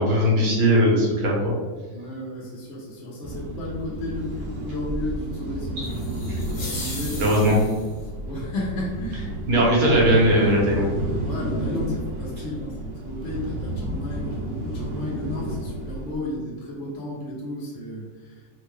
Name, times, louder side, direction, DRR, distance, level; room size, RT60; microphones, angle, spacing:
voice 1, 0.0-1.5 5.8-5.9 6.3-6.4 7.2-7.6 9.5-10.9, equal, 90° right, -3 dB, 1.8 m, -19 dB
voice 2, 1.9-6.1 6.6-7.4 8.2-9.4 11.2-18.4, left 1 dB, 75° left, -4 dB, 0.6 m, -33 dB
sound 1, 3.2-16.2, right 1 dB, 70° right, 1.2 m, -32 dB
sound 2, 5.8-8.0, left 2 dB, 40° left, 1.0 m, -37 dB
3.7 x 2.2 x 3.1 m, 1.3 s
omnidirectional pair, 2.1 m